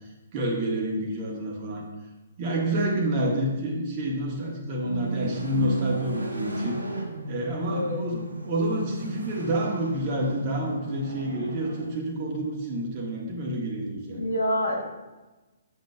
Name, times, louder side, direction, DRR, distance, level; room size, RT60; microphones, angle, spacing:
voice 1, 0.3-1.8 2.4-6.8 7.3-14.2, right 1 dB, 35° right, -2 dB, 1.3 m, -28 dB
sound 1, 4.8-11.9, right 1 dB, 80° right, 1.0 m, -34 dB
voice 2, 7.6-8.0 14.2-14.9, equal, 65° left, 1 dB, 1.2 m, -27 dB
7.2 x 6.2 x 2.4 m, 1.1 s
figure-of-eight pair, 130°, 0 cm